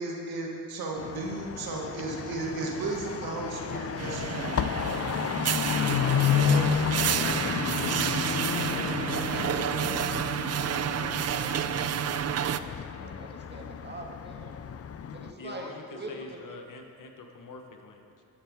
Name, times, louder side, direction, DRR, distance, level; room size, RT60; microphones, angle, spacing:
voice 1, 0.0-4.5, right 3 dB, 80° right, 0 dB, 1.5 m, -34 dB
sound 1, 1.0-15.3, left 8 dB, 40° left, 0.5 m, -31 dB
Radio Interference, 4.0-12.6, right 9 dB, 45° right, 0.4 m, -30 dB
voice 2, 6.3-8.0 10.9-14.6 15.1-16.4, right 1 dB, 30° right, 0 dB, 1.8 m, -43 dB
sound 2, 8.7-13.0, left 2 dB, 20° left, 1.6 m, -45 dB
voice 3, 15.3-18.2, left 3 dB, 60° left, 4 dB, 1.2 m, -45 dB
11.5 x 8.1 x 3.6 m, 2.3 s
supercardioid pair, 50°, 36 cm